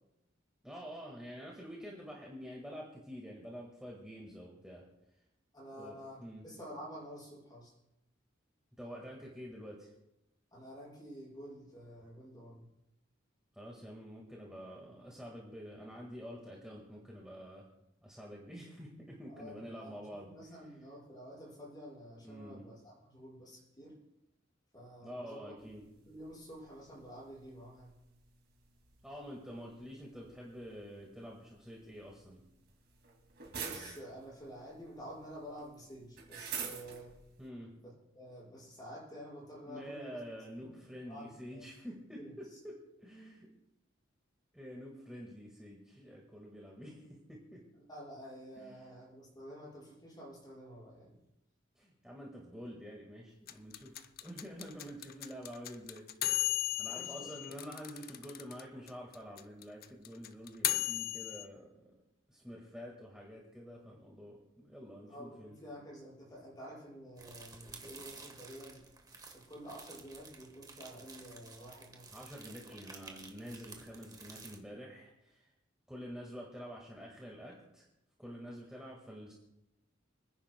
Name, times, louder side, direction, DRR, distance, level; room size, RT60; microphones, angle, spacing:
voice 1, 0.6-4.9 5.7-6.4 8.7-9.9 13.5-17.7 18.0-20.3 22.2-22.7 25.0-25.9 29.0-32.4 37.4-37.8 39.6-43.5 44.5-47.6 48.6-48.8 51.8-56.1 56.8-62.0 62.3-65.6 72.1-75.5 75.9-77.8 78.2-79.3, equal, 5° right, -3 dB, 1.8 m, -48 dB
voice 2, 5.5-7.7 10.5-12.7 19.3-20.0 20.3-24.0 24.7-25.7 26.1-27.9 33.4-37.2 37.8-37.9 38.2-40.2 40.6-40.8 41.1-41.7 42.2-42.3 47.9-51.2 56.8-57.6 65.1-68.8 69.3-72.1, equal, 20° left, -6 dB, 5.7 m, -50 dB
sound 1, 25.6-37.5, right 6 dB, 55° right, 2.4 m, -49 dB
sound 2, 53.5-58.6 58.9-59.0 59.1-61.4, left 13 dB, 50° left, 0.5 m, -35 dB
sound 3, 67.2-74.6, right 4 dB, 20° right, 1.4 m, -53 dB
29.5 x 10.0 x 2.3 m, 0.88 s
head